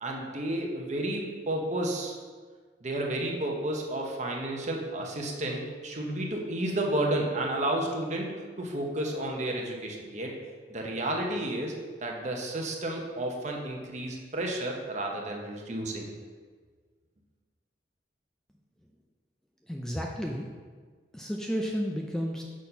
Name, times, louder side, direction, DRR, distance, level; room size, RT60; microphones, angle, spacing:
voice 1, 0.0-2.1 2.8-8.3 8.6-10.4 10.7-11.7 12.0-16.1, right 1 dB, 40° right, 0 dB, 1.0 m, -31 dB
voice 2, 19.7-20.5 21.1-22.4, equal, 5° left, 0 dB, 0.4 m, -32 dB
6.2 x 4.2 x 5.4 m, 1.5 s
head